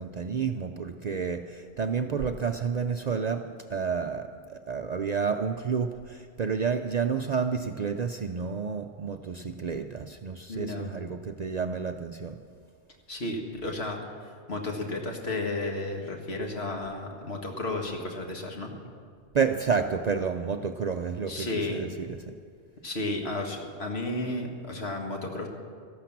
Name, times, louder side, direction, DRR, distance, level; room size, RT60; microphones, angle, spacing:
voice 1, 0.0-12.4 19.3-22.4, right 6 dB, 55° right, 6 dB, 0.5 m, -30 dB
voice 2, 10.5-10.9 13.1-18.8 21.3-21.8 22.8-25.5, left 2 dB, 70° left, 1 dB, 2.0 m, -33 dB
13.5 x 12.0 x 7.2 m, 2.1 s
omnidirectional pair, 1.1 m